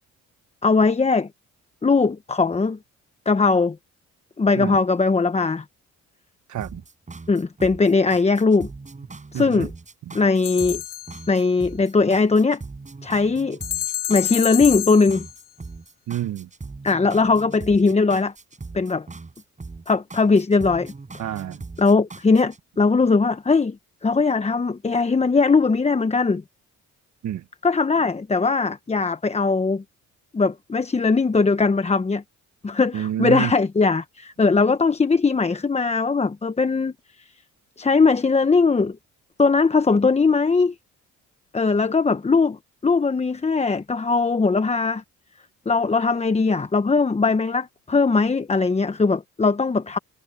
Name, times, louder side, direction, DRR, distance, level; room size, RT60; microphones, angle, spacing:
voice 1, 0.6-1.3 1.8-2.8 3.3-3.8 4.4-5.6 7.3-8.7 9.3-9.7 10.1-10.8 11.3-12.6 13.0-13.6 14.1-15.3 16.8-18.3 18.7-19.1 19.9-20.9 21.8-23.8 24.0-26.4 27.6-29.8 30.3-32.2 32.6-37.3 37.8-39.0 39.4-40.7 41.5-42.6 42.8-45.0 45.7-50.0, left 4 dB, 20° left, 1.0 m, -20 dB
voice 2, 6.5-6.8 9.3-9.7 16.1-16.5 21.2-21.6 27.2-27.4 32.9-33.5, right 12 dB, 70° right, 1.4 m, -28 dB
sound 1, 6.6-22.6, right 3 dB, 25° right, 5.2 m, -40 dB
sound 2, 10.4-11.5 13.6-15.4, left 12 dB, 85° left, 2.6 m, -29 dB
cardioid pair, 90°, 30 cm